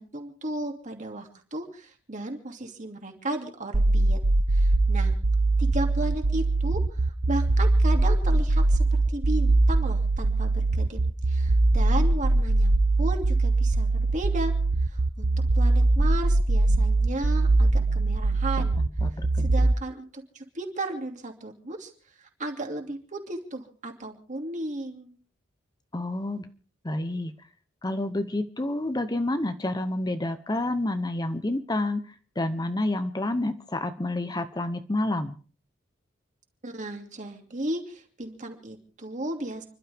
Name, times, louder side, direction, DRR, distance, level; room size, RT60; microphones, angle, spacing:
voice 1, 0.0-4.2 4.5-5.1 5.6-11.0 11.3-12.7 13.0-14.5 14.8-18.8 19.4-21.9 22.2-25.2 36.6-39.7, right 1 dB, 40° right, 3 dB, 2.7 m, -34 dB
sound 1, 3.7-19.7, right 2 dB, 70° right, 0.9 m, -22 dB
voice 2, 17.9-18.2 19.0-19.5 25.9-26.5 26.8-27.3 27.8-35.4, left 1 dB, 20° left, 10 dB, 0.8 m, -29 dB
29.5 x 12.0 x 3.5 m, 0.39 s
head